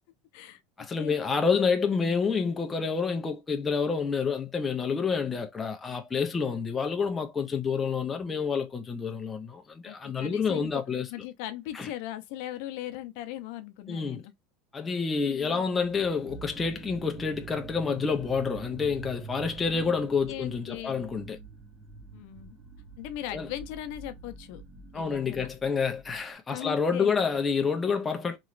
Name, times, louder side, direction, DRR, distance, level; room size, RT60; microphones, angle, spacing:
voice 1, 0.8-11.1 11.7-11.9 13.9-14.2 14.7-21.4 23.3-23.5 24.9-28.4, left 5 dB, 15° left, 0.4 m, -28 dB
voice 2, 9.8-10.8 11.1-14.3 15.2-15.6 19.7-19.9 20.3-21.1 22.1-22.6 23.0-24.6 24.9-25.5 26.5-27.2, left 13 dB, 60° left, 0.6 m, -39 dB
sound 1, 15.6-26.2, right 5 dB, 25° right, 0.8 m, -46 dB
3.0 x 2.9 x 2.5 m
supercardioid pair, 160°, 0 cm